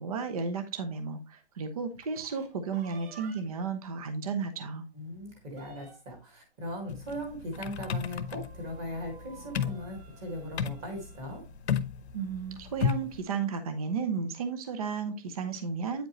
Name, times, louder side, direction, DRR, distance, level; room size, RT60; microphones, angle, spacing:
voice 1, 0.0-4.8 12.1-16.1, right 5 dB, 35° right, 8 dB, 0.7 m, -33 dB
sound 1, 1.9-3.7 4.2-4.3 4.6-4.7 5.0-6.2 7.5-11.4, right 4 dB, 60° right, 1.8 m, -54 dB
voice 2, 4.9-11.4, equal, 15° right, 2 dB, 1.8 m, -39 dB
sound 2, 6.9-13.2, left 7 dB, 70° left, 0.9 m, -33 dB
8.8 x 5.1 x 3.0 m, 0.30 s
hypercardioid pair, 180°, 33 cm